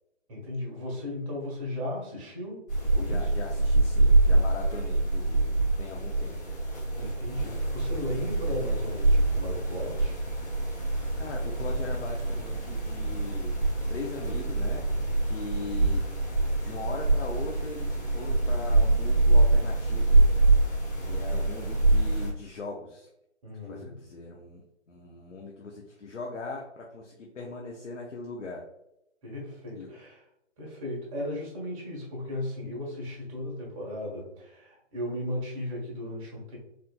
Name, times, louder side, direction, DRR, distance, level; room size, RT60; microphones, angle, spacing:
voice 1, 0.3-3.3 7.0-10.2 23.4-24.0 29.2-30.2 30.6-36.6, left 1 dB, 30° right, -3 dB, 1.2 m, -36 dB
sound 1, 2.7-22.3, right 2 dB, 15° left, 0.5 m, -25 dB
voice 2, 3.0-6.5 10.9-14.8 15.2-16.0 16.6-20.2 21.0-23.1 23.7-28.6 29.7-29.9, left 3 dB, 85° left, -1 dB, 0.7 m, -40 dB
4.3 x 2.6 x 2.3 m, 0.85 s
figure-of-eight pair, 140°, 36 cm